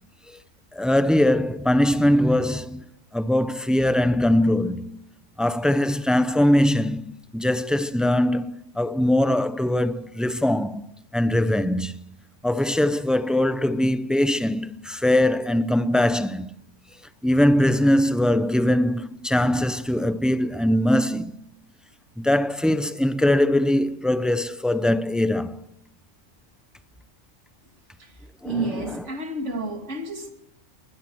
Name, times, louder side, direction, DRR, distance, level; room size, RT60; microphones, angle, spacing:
voice 1, 0.7-2.8 3.1-5.0 5.4-7.1 7.3-10.8 11.1-12.2 12.4-16.5 17.2-21.3 22.2-25.6 28.4-28.6, left 1 dB, ahead, 0.6 m, -21 dB
voice 2, 28.4-30.3, right 2 dB, 70° right, 2.9 m, -30 dB
22.0 x 20.0 x 6.3 m
omnidirectional pair, 1.3 m